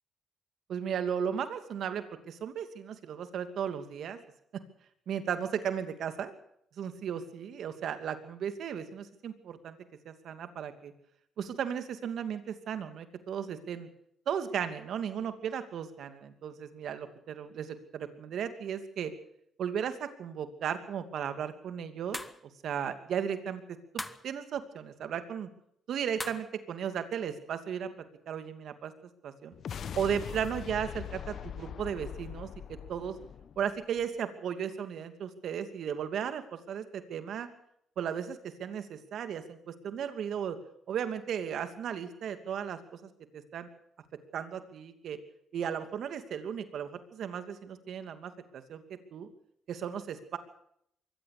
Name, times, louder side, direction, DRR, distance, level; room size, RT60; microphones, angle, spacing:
voice 1, 0.7-4.2 5.1-6.3 6.8-9.8 10.0-10.9 11.4-13.9 14.3-19.1 19.6-22.2 22.6-23.6 23.9-25.5 25.9-27.9 28.3-28.9 29.2-29.5 30.0-33.2 33.6-37.5 38.0-40.6 40.9-43.7 44.3-45.2 45.5-48.8 49.1-49.3 49.7-50.4, right 8 dB, 70° right, 9 dB, 2.7 m, -35 dB
sound 1, 22.1-22.4 24.0-24.3 26.2-26.5, left 1 dB, 10° left, 1.3 m, -39 dB
sound 2, 29.5-34.0, left 8 dB, 60° left, 1.1 m, -42 dB
23.0 x 17.0 x 6.8 m, 0.71 s
cardioid pair, 90°, 0 cm